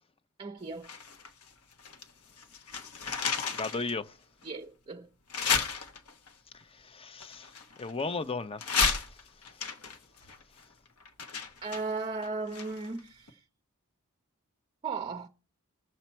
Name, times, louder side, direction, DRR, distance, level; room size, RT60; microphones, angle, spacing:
voice 1, 0.4-0.9 4.4-5.1 11.6-13.4 14.8-15.3, right 4 dB, 25° right, 0.6 m, -36 dB
sound 1, 0.8-2.1 2.4-3.9 4.4-4.5 5.3-6.3 7.2-8.2 8.6-13.0 13.3-13.4, left 5 dB, 75° left, 1.3 m, -33 dB
voice 2, 3.5-4.2 6.5-9.8 10.2-10.4 10.6-10.7, left 3 dB, 25° left, 0.6 m, -37 dB
19.5 x 7.2 x 4.4 m
head